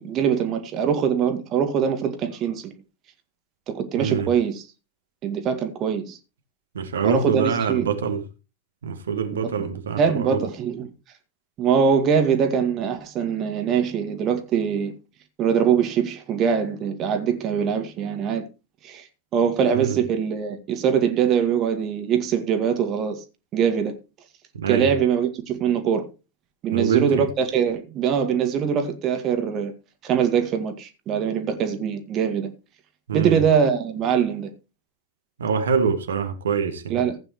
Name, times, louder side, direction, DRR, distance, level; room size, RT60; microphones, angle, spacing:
voice 1, 0.0-2.7 3.7-4.6 5.2-6.2 7.0-8.0 9.4-9.7 10.0-10.9 11.6-14.9 15.4-18.4 18.8-19.1 19.3-23.2 23.5-23.9 24.7-26.1 26.6-29.7 30.0-32.5 33.1-34.5 36.9-37.2, right 7 dB, 35° right, 2.0 m, -23 dB
voice 2, 4.0-4.3 6.7-8.2 8.8-10.4 19.7-20.0 24.5-24.9 26.7-27.2 33.1-33.4 35.4-37.0, right 6 dB, 65° right, 2.0 m, -25 dB
15.5 x 9.1 x 3.1 m
figure-of-eight pair, 90°, 0 cm